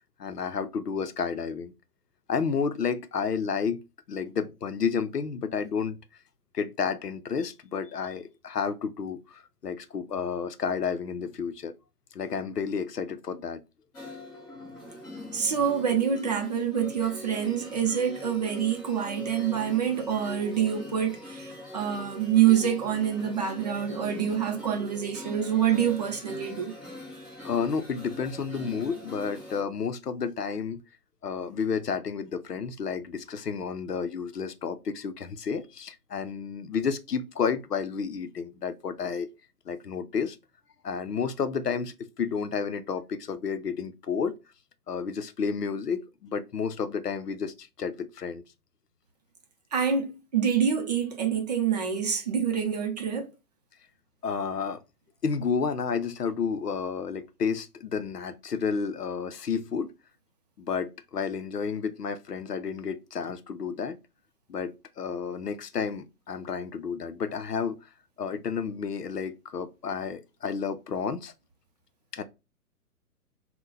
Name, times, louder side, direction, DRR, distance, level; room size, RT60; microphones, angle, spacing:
voice 1, 0.2-1.7 2.3-3.8 4.1-6.0 6.5-11.7 12.1-13.6 27.4-30.8 31.2-39.3 39.7-40.4 40.8-44.3 44.9-48.4 54.2-54.8 55.2-59.9 60.6-64.0 64.5-67.9 68.2-71.3 72.1-72.2, left 6 dB, 85° left, 0.6 m, -31 dB
sound 1, 13.9-29.6, left 1 dB, 10° left, 0.7 m, -42 dB
voice 2, 15.3-26.8 49.7-53.3, right 8 dB, 30° right, 0.5 m, -26 dB
3.6 x 2.2 x 4.0 m
figure-of-eight pair, 125°, 46 cm